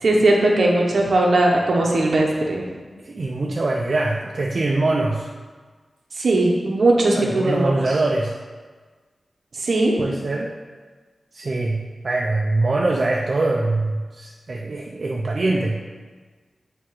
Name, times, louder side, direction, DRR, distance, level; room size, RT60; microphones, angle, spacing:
voice 1, 0.0-2.6 6.2-7.7 9.5-9.9, right 2 dB, 70° right, -1 dB, 0.9 m, -18 dB
voice 2, 3.0-5.3 7.2-8.4 10.0-10.6 11.3-15.8, right 2 dB, 50° right, -1 dB, 0.4 m, -23 dB
7.7 x 2.8 x 4.7 m, 1.4 s
wide cardioid pair, 125°, 0 cm